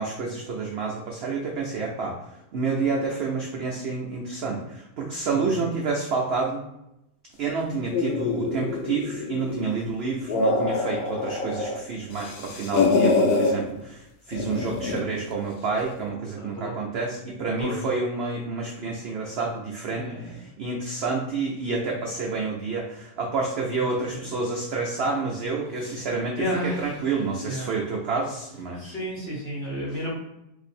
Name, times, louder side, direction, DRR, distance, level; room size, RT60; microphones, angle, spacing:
voice 1, 0.0-2.2 2.5-6.6 7.4-28.9, right 4 dB, 70° right, -1 dB, 0.6 m, -29 dB
sound 1, 7.9-9.7 10.1-11.8 12.1-13.5 14.3-15.1, left 3 dB, 75° left, 0.5 m, -25 dB
voice 2, 16.3-16.8 17.6-17.8 19.9-20.5 23.8-24.3 25.8-26.0 26.4-27.1 27.4-27.8 28.8-30.1, equal, 45° left, -4 dB, 1.1 m, -32 dB
2.6 x 2.6 x 4.2 m, 0.87 s
omnidirectional pair, 1.6 m